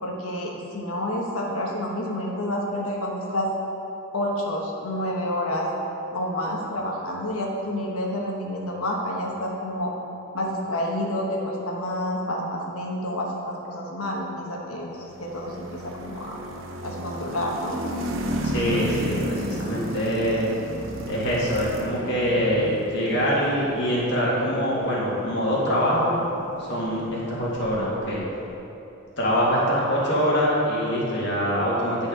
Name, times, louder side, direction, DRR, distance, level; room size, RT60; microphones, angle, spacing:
voice 1, 0.0-3.5 4.1-5.7 6.1-9.9 10.3-16.4 16.8-17.8, left 1 dB, 85° left, -2 dB, 1.1 m, -29 dB
sound 1, 15.0-28.2, right 1 dB, 65° right, 0.7 m, -34 dB
voice 2, 18.4-20.5 21.1-26.2 26.6-28.2 29.2-32.1, equal, 55° left, -6 dB, 2.0 m, -24 dB
10.5 x 4.4 x 5.1 m, 2.9 s
head